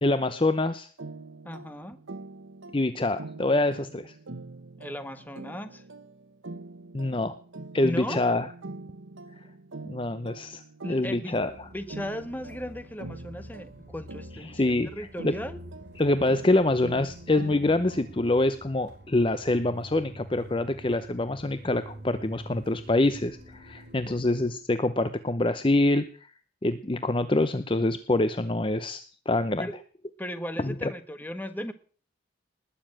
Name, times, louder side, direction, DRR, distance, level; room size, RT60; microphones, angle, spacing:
voice 1, 0.0-0.9 2.7-4.1 6.9-7.3 7.7-8.5 9.9-10.6 10.9-11.7 14.5-15.3 16.0-26.3 26.6-29.7 30.6-30.9, left 2 dB, 25° left, 12 dB, 0.7 m, -25 dB
sound 1, 1.0-18.4, right 2 dB, 80° right, 1.1 m, -44 dB
voice 2, 1.4-2.0 4.8-5.8 7.8-8.2 10.8-11.4 11.7-15.6 24.0-24.4 29.6-29.8 30.2-31.7, equal, 10° left, 11 dB, 1.2 m, -37 dB
sound 2, 11.3-24.6, equal, 55° right, 5.2 m, -47 dB
19.5 x 7.0 x 8.8 m, 0.43 s
head